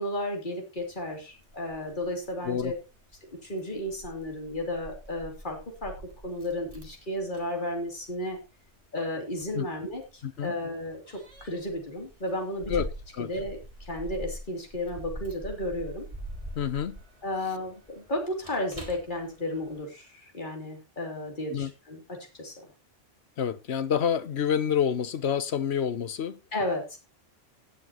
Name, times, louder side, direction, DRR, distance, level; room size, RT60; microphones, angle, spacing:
voice 1, 0.0-2.7 3.2-6.0 6.2-8.4 8.9-12.8 13.2-16.1 17.2-22.7 26.5-27.0, left 1 dB, 40° left, 3.2 m, -33 dB
Keys jangling, 0.8-19.8, right 1 dB, 30° right, 3.5 m, -45 dB
voice 2, 10.2-10.5 12.7-12.9 13.2-13.3 16.6-17.0 21.5-21.7 23.4-26.4, left 8 dB, 65° left, 1.0 m, -28 dB
17.5 x 8.4 x 3.0 m
omnidirectional pair, 1.2 m